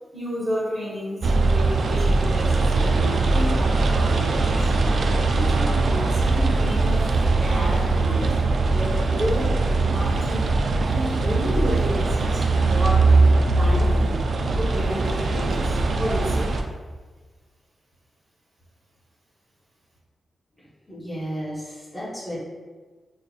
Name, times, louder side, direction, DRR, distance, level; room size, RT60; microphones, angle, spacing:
voice 1, 0.1-4.8 5.3-7.1 7.4-10.5 10.8-14.1 14.6-16.5, equal, 35° right, -5 dB, 1.3 m, -31 dB
sound 1, 1.2-16.6, right 3 dB, 65° right, 0.3 m, -21 dB
voice 2, 20.6-22.4, equal, 5° left, -9 dB, 1.2 m, -34 dB
3.5 x 3.1 x 2.5 m, 1.3 s
cardioid pair, 70°, 0 cm